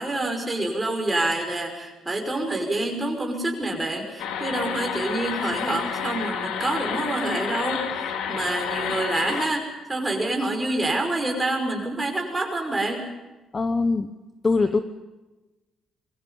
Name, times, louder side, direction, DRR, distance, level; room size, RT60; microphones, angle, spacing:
voice 1, 0.0-9.6 9.9-13.0, right 2 dB, 10° right, 2 dB, 5.6 m, -27 dB
sound 1, 4.2-9.5, left 7 dB, 80° left, 3.1 m, -30 dB
voice 2, 13.5-14.1 14.4-14.8, left 3 dB, 20° left, 9 dB, 1.0 m, -22 dB
27.0 x 23.0 x 5.5 m, 1.1 s
cardioid pair, 170°, 0 cm